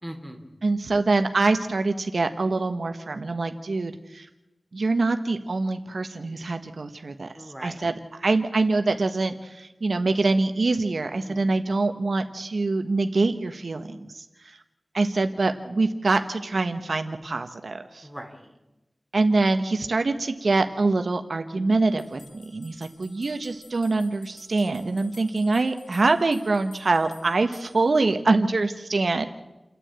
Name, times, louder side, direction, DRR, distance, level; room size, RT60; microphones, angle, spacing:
voice 1, 0.0-0.5 7.3-7.8 11.3-11.4 18.0-18.5, equal, ahead, 4 dB, 3.5 m, -39 dB
voice 2, 0.6-4.3 4.7-7.3 7.6-14.6 14.9-18.1 19.1-29.2, right 3 dB, 75° right, 7 dB, 1.2 m, -24 dB
sound 1, 22.0-28.0, left 2 dB, 70° left, 7.8 m, -53 dB
29.5 x 10.0 x 8.8 m, 1.0 s
wide cardioid pair, 55°, 0 cm